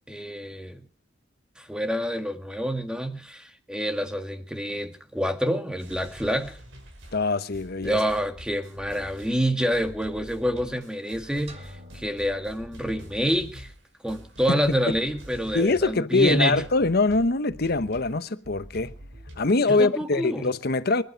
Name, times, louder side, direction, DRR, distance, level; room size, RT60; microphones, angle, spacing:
voice 1, 0.1-0.9 1.6-6.6 7.8-13.7 14.0-16.6 19.7-20.5, equal, 5° right, 1.8 m, -27 dB
sound 1, 5.8-16.0 16.3-19.6, equal, 75° right, 5.4 m, -46 dB
voice 2, 7.1-8.0 14.5-14.6 14.9-15.0 15.5-18.9 19.4-21.0, left 3 dB, 55° left, 1.0 m, -23 dB
sound 2, 11.5-13.4, equal, 35° right, 2.9 m, -48 dB
25.5 x 12.0 x 4.6 m
head